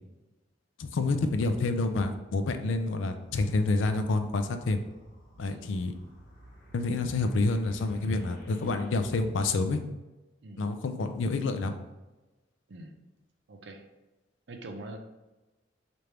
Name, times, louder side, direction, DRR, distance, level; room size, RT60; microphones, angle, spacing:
voice 1, 0.8-4.8 5.4-5.9 6.7-9.8 10.6-11.7, left 3 dB, 80° left, 8 dB, 0.4 m, -28 dB
sound 1, 3.2-8.9, equal, 50° left, 1.2 m, -53 dB
voice 2, 13.5-13.8 14.5-15.0, right 2 dB, 65° right, 4 dB, 0.5 m, -43 dB
3.3 x 2.5 x 4.4 m, 1.1 s
head